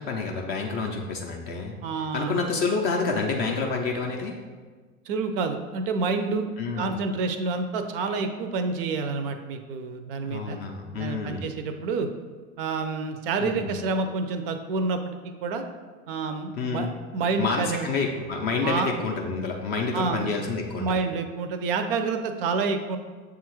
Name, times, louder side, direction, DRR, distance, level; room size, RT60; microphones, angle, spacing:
voice 1, 0.0-4.3 6.6-6.9 10.2-11.4 13.4-13.7 16.6-16.9 17.4-21.0, left 4 dB, 25° left, 1 dB, 0.3 m, -28 dB
voice 2, 1.8-2.4 5.1-6.5 6.8-10.6 10.9-12.1 12.6-15.0 15.4-15.6 16.1-16.9 17.1-17.9 18.6-18.9 19.9-20.3 20.8-23.0, right 4 dB, 45° right, 8 dB, 0.4 m, -28 dB
6.9 x 2.4 x 3.0 m, 1.4 s
figure-of-eight pair, 90°, 42 cm